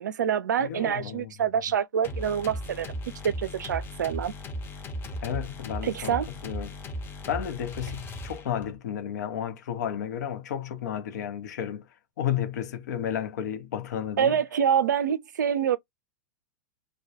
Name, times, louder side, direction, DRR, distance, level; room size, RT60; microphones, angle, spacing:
voice 1, 0.0-2.9 3.2-4.3 5.8-6.3 14.2-15.8, right 8 dB, 80° right, 0.4 m, -26 dB
voice 2, 0.6-1.3 5.2-6.7 7.3-11.9 12.2-14.4, left 9 dB, 70° left, 0.7 m, -32 dB
sound 1, 2.0-8.8, left 1 dB, 20° left, 0.7 m, -37 dB
2.2 x 2.2 x 2.7 m
hypercardioid pair, 110°, 10 cm